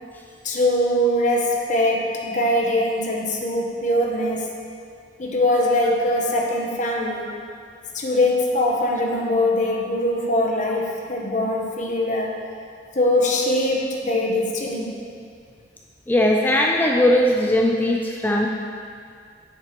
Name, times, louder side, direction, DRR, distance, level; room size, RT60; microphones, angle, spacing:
voice 1, 0.4-4.5 5.2-7.3 7.9-12.3 12.9-15.0, left 1 dB, 45° left, -1 dB, 0.9 m, -22 dB
voice 2, 16.1-18.5, left 1 dB, 10° left, 0 dB, 0.4 m, -19 dB
8.8 x 7.5 x 2.9 m, 2.2 s
head